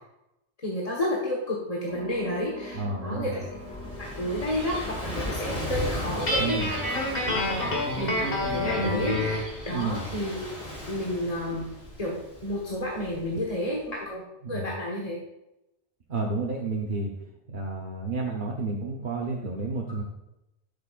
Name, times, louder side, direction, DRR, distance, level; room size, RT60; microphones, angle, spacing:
voice 1, 0.6-3.4 4.2-4.8 5.0-10.5 10.9-11.6 12.0-14.2 14.5-15.2, left 1 dB, 35° left, -3 dB, 1.5 m, -31 dB
sound 1, 1.9-7.5, left 2 dB, 35° right, 3.3 m, -43 dB
voice 2, 2.7-3.4 6.4-6.7 9.7-10.0 13.3-13.5 14.4-14.7 16.1-17.1 17.5-20.0, right 3 dB, 50° right, -2 dB, 1.1 m, -31 dB
Gull seagull / Waves surf, 3.2-13.8, equal, 80° left, 3.9 m, -37 dB
Guitar, 6.3-9.5, left 1 dB, 55° left, 1.9 m, -28 dB
12.0 x 6.8 x 2.5 m, 0.89 s
omnidirectional pair, 1.1 m